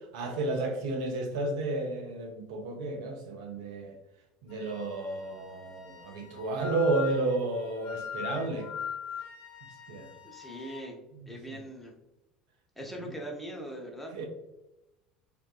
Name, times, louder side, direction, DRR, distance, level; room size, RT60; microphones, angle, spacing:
voice 1, 0.1-3.9 4.4-8.7 9.9-10.1 11.1-11.6 14.1-14.3, right 2 dB, 60° right, 4 dB, 0.4 m, -32 dB
Wind instrument woodwind instrument, 4.5-10.9, left 8 dB, 55° left, 0.7 m, -42 dB
voice 2, 10.2-11.0 11.3-11.9 12.8-14.3, right 1 dB, 5° left, -1 dB, 0.7 m, -41 dB
3.3 x 2.2 x 2.4 m, 0.93 s
figure-of-eight pair, 70°, 4 cm